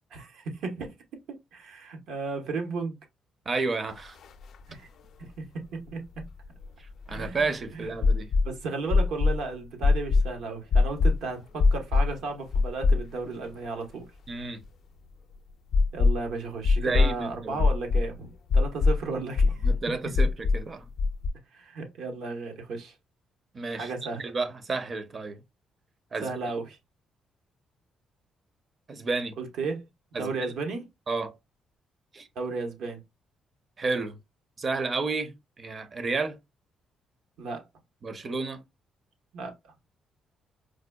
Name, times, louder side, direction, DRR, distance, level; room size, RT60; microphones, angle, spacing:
voice 1, 0.1-0.9 1.5-3.0 4.7-4.9 5.2-6.2 7.1-7.9 8.4-14.1 15.9-19.7 21.5-22.9 23.7-24.3 26.2-26.8 29.4-29.8 30.2-30.9 32.3-33.0 37.4-37.6 39.3-39.7, right 3 dB, 80° right, 0.9 m, -34 dB
voice 2, 3.5-4.2 7.1-8.3 14.3-14.6 16.8-17.6 19.6-20.9 23.5-23.9 24.2-25.4 26.1-26.4 28.9-29.3 30.1-30.5 31.1-31.4 32.1-32.3 33.8-34.2 34.6-36.4 38.0-38.6, right 3 dB, 40° right, 0.6 m, -31 dB
sound 1, 4.2-4.3 4.5-4.6 6.2-7.4 8.0-8.5 8.9-9.4 9.8-10.3 10.7-11.2 11.6-12.1 12.5-13.3 13.6-13.7 15.7-16.3 16.6-17.1 17.6-18.1 18.5-19.0 19.4-19.8 20.1-20.6 21.0-21.3, left 4 dB, 65° left, 0.4 m, -21 dB
4.7 x 2.2 x 2.2 m
cardioid pair, 90°, 0 cm